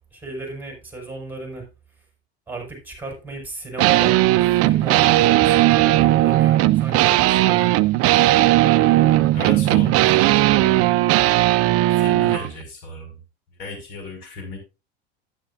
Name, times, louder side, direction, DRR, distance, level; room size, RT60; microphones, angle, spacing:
voice 1, 0.1-1.7 2.5-7.8, right 2 dB, 5° right, 1 dB, 5.6 m, -35 dB
sound 1, 3.8-12.5, right 16 dB, 45° right, 0.6 m, -17 dB
voice 2, 9.3-10.1 10.4-10.9 11.9-13.2 13.6-14.6, left 2 dB, 60° left, 2 dB, 5.6 m, -34 dB
11.5 x 10.0 x 2.5 m, 0.30 s
hypercardioid pair, 85°, 32 cm